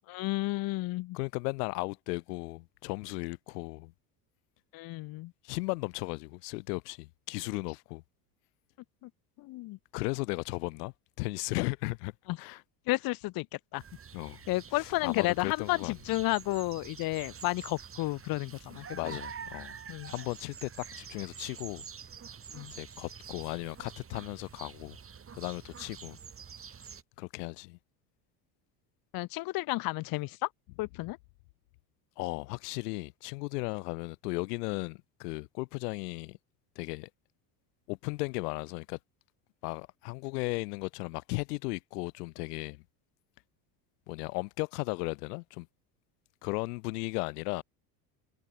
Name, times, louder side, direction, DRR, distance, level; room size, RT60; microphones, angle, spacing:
voice 1, 0.1-1.2 4.7-5.3 9.0-9.1 9.4-9.8 12.3-12.4 12.9-13.5 13.7-13.8 14.5-19.2 19.9-20.1 22.5-22.7 29.1-30.5 30.8-31.2, left 20 dB, 50° left, 0.7 m, -32 dB
voice 2, 1.1-3.9 5.4-8.0 9.9-12.1 12.4-12.6 14.1-14.4 14.8-15.9 18.9-19.7 20.1-21.9 22.7-25.0 25.3-26.2 27.2-27.8 32.2-36.4 36.7-37.1 37.9-39.0 39.6-42.8 44.1-45.7 46.4-47.6, left 25 dB, 85° left, 1.3 m, -36 dB
sound 1, 13.8-27.0, right 7 dB, 30° right, 3.7 m, -47 dB
supercardioid pair, 100°, 46 cm